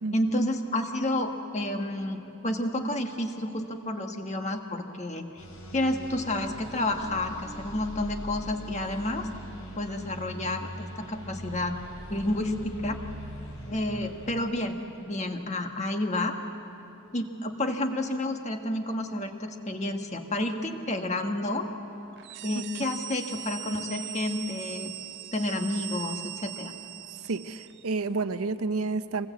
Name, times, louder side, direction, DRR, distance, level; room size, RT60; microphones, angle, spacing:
voice 1, 0.1-5.4 5.7-9.3 9.8-11.8 12.1-13.0 13.7-16.3 17.1-21.7 22.4-24.9 25.3-26.7, left 1 dB, 30° left, 4 dB, 1.5 m, -30 dB
sound 1, 5.4-14.4, equal, 80° left, 4.7 m, -42 dB
sound 2, 22.2-27.9, right 14 dB, 55° right, 0.5 m, -40 dB
voice 2, 22.5-22.9 27.2-29.3, right 3 dB, 90° right, 11 dB, 0.8 m, -30 dB
25.0 x 20.0 x 8.4 m, 2.9 s
head